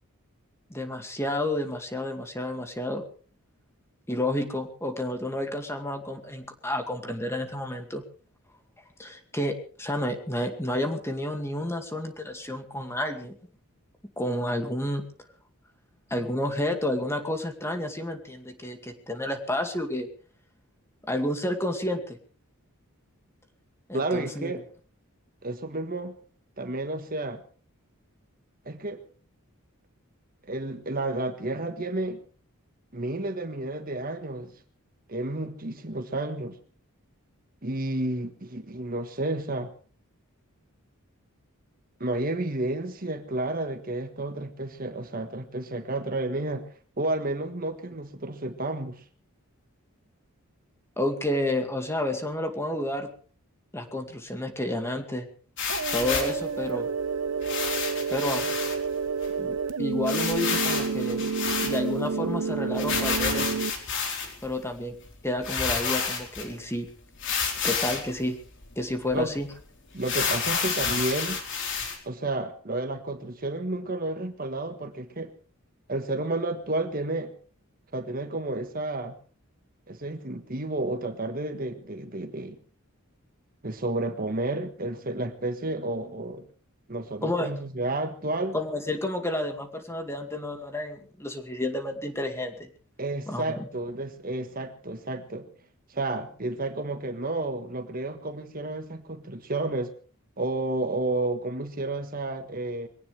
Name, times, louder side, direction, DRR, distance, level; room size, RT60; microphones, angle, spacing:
voice 1, 0.7-3.0 4.1-8.0 9.0-13.3 14.2-15.0 16.1-20.1 21.0-22.2 23.9-24.5 51.0-53.1 53.7-55.3 55.9-56.9 58.1-58.6 59.4-61.3 61.6-63.5 64.4-64.9 65.2-66.9 67.6-68.4 68.8-69.5 87.2-87.5 88.5-92.7 93.3-93.7, left 1 dB, 10° left, 5 dB, 2.2 m, -30 dB
voice 2, 23.9-24.6 25.4-26.2 26.6-27.4 28.6-29.0 30.5-32.2 32.9-34.5 35.1-36.6 37.6-39.7 42.0-46.7 47.0-49.0 69.1-69.3 69.9-71.4 72.0-75.3 75.9-77.3 77.9-79.1 79.9-82.6 83.6-86.5 86.9-88.6 93.0-95.5 95.9-99.9 100.4-102.9, right 2 dB, 40° right, 8 dB, 1.4 m, -31 dB
sound 1, 55.6-56.4 57.4-58.8 59.2-59.3 59.5-59.6 60.1-62.1 62.8-64.5 65.1-65.2 65.4-66.5 67.2-68.1 68.6-68.7 69.1-69.2 70.0-72.0, left 5 dB, 55° left, 4.2 m, -29 dB
sound 2, 55.7-63.7, right 5 dB, 75° right, 1.0 m, -29 dB
22.5 x 18.0 x 3.4 m, 0.41 s
head